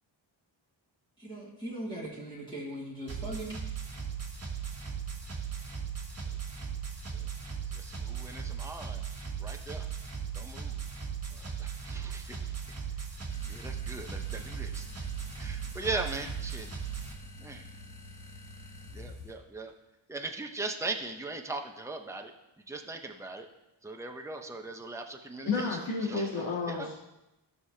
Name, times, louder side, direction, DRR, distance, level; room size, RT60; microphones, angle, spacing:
voice 1, 1.2-3.5, right 1 dB, 10° left, -7 dB, 2.2 m, -39 dB
sound 1, 3.1-17.1, right 7 dB, 30° right, 1.5 m, -38 dB
voice 2, 7.7-9.9 10.3-10.8 11.3-12.8 13.5-15.1 15.4-16.9 17.4-17.7 18.9-19.7 20.1-22.3 22.7-23.5 23.8-26.3 26.7-26.9, right 3 dB, 5° right, 3 dB, 0.7 m, -40 dB
sound 2, 13.3-19.3, left 2 dB, 40° left, 1.7 m, -48 dB
voice 3, 25.4-27.0, left 4 dB, 80° left, -7 dB, 2.9 m, -31 dB
15.0 x 6.5 x 2.8 m, 0.94 s
wide cardioid pair, 110°, 47 cm